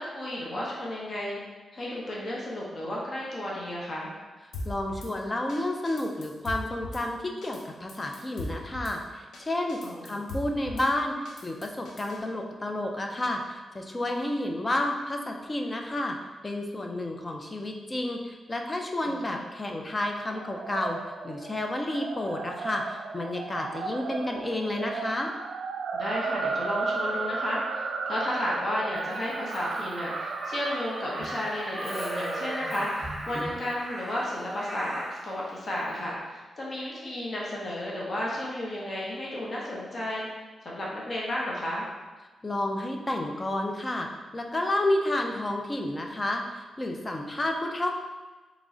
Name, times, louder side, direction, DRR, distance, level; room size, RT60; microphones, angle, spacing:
voice 1, 0.0-1.4 1.7-4.1 9.8-10.2 19.0-19.4 25.9-40.3 40.6-41.9, left 1 dB, 35° left, -5 dB, 0.9 m, -33 dB
Drum kit / Snare drum, 4.5-5.1 5.5-5.6 5.9-7.0 7.4-7.6 7.9-9.0 9.3-9.4 9.7-10.9 11.3-12.2, left 1 dB, 80° left, 0.6 m, -38 dB
voice 2, 4.7-16.2 16.4-25.3 42.4-44.1 44.3-47.9, left 1 dB, 20° left, 2 dB, 0.4 m, -30 dB
sound 1, 20.3-32.7, right 4 dB, 85° right, 0.3 m, -35 dB
Crow, 28.9-35.3 36.7-36.9, right 1 dB, 20° right, 0.9 m, -37 dB
3.6 x 3.1 x 3.8 m, 1.2 s
wide cardioid pair, 160°, 0 cm